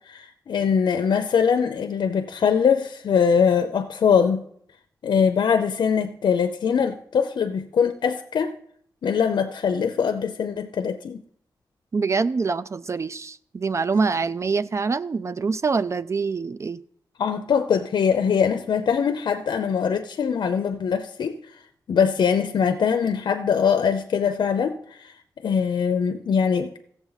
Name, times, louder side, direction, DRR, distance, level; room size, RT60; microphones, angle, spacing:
voice 1, 0.1-4.4 5.0-8.5 9.0-11.2 17.2-21.4 21.9-25.1 25.4-26.7, left 7 dB, 80° left, 0.5 m, -22 dB
voice 2, 11.9-16.8, right 4 dB, 40° right, 0.3 m, -25 dB
15.0 x 7.1 x 4.0 m
wide cardioid pair, 95°, 8 cm